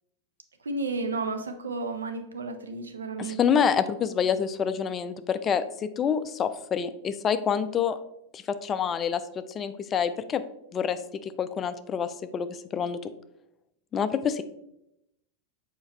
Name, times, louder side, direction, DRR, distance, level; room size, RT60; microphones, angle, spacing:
voice 1, 0.6-3.6, right 3 dB, 70° right, 7 dB, 0.7 m, -32 dB
voice 2, 3.2-8.0 8.3-10.4 10.7-13.0 13.9-14.4, left 7 dB, 25° left, 12 dB, 0.4 m, -27 dB
7.0 x 4.7 x 3.3 m, 0.82 s
figure-of-eight pair, 90°, 0 cm